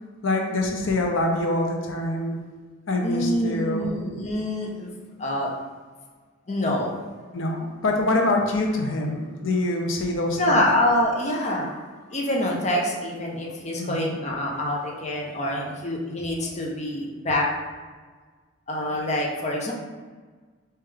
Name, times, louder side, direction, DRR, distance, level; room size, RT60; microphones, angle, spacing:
voice 1, 0.2-2.4 2.9-4.0 7.3-10.6 13.8-14.2, left 2 dB, 90° left, 1 dB, 0.6 m, -25 dB
voice 2, 3.0-4.9 5.2-5.5 6.5-6.9 10.4-11.8 12.1-17.5 18.7-19.7, left 1 dB, 35° left, -2 dB, 0.7 m, -26 dB
4.3 x 3.6 x 3.4 m, 1.5 s
head